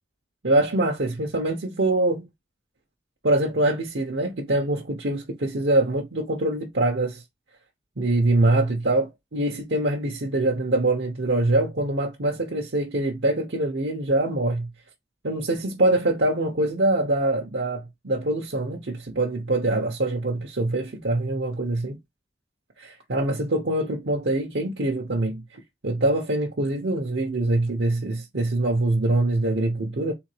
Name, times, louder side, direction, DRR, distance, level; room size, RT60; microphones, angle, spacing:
voice 1, 0.4-2.3 3.2-7.2 8.0-14.7 15.2-22.0 22.8-30.1, right 2 dB, 80° right, 0.9 m, -24 dB
3.8 x 3.5 x 3.2 m
head